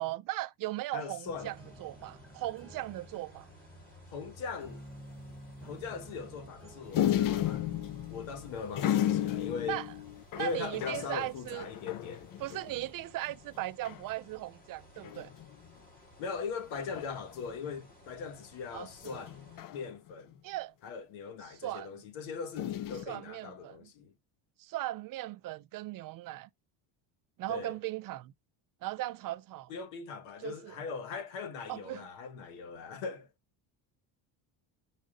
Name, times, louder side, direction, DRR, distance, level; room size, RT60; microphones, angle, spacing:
voice 1, 0.0-3.5 9.7-9.9 10.3-11.7 12.4-15.3 18.7-19.2 20.4-20.7 21.5-21.9 23.1-23.9 24.6-26.5 27.4-28.3 28.8-29.7 30.4-30.7 31.7-32.1, right 16 dB, 50° right, 0.4 m, -38 dB
voice 2, 0.9-1.5 4.1-4.8 5.6-7.7 8.1-9.8 10.4-12.3 16.2-20.4 20.8-24.1 27.5-27.7 29.7-33.3, left 5 dB, 85° left, 1.5 m, -40 dB
sound 1, 1.2-11.5, right 1 dB, ahead, 3.0 m, -53 dB
sound 2, 1.4-19.6, left 2 dB, 20° left, 4.8 m, -57 dB
sound 3, 6.9-12.9 13.3-13.4 13.6-14.1 15.0-15.5 16.9-17.4 19.0-20.3 22.6-23.0, left 11 dB, 45° left, 0.6 m, -33 dB
6.4 x 4.9 x 3.8 m
cardioid pair, 135°, 46 cm